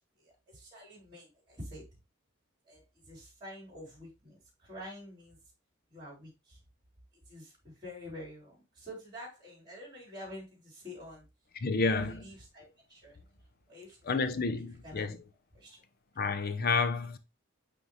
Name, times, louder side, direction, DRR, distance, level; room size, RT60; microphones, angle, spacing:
voice 1, 0.2-1.8 2.7-5.4 5.9-6.6 7.3-11.2 12.0-13.2 13.7-14.2 14.5-15.1 15.5-15.8, left 1 dB, 20° right, 3.6 m, -48 dB
voice 2, 11.6-12.3 14.0-15.2 16.2-17.2, left 4 dB, 45° left, 0.7 m, -30 dB
9.5 x 3.4 x 3.1 m
head